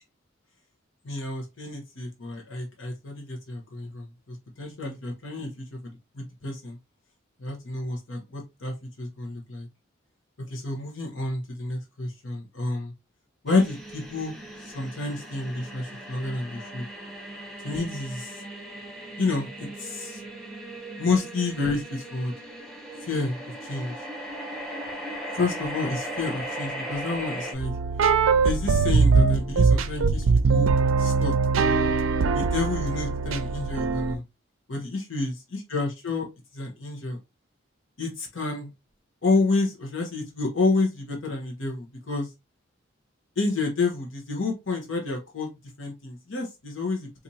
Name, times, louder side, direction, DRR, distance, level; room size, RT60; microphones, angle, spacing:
voice 1, 1.0-6.8 7.4-9.7 10.5-12.9 13.4-14.3 14.6-16.9 17.6-18.4 19.2-20.2 21.0-22.3 23.0-24.1 25.3-27.8 28.4-30.7 31.0-31.3 32.3-34.2 34.7-36.3 36.5-37.2 38.0-38.7 39.2-42.3 43.4-45.5 45.8-47.2, left 3 dB, 80° left, 1 dB, 1.0 m, -29 dB
sound 1, 13.5-27.5, right 1 dB, ahead, 0.8 m, -38 dB
sound 2, 27.6-34.1, right 4 dB, 90° right, 0.5 m, -22 dB
4.1 x 2.6 x 2.8 m, 0.23 s
head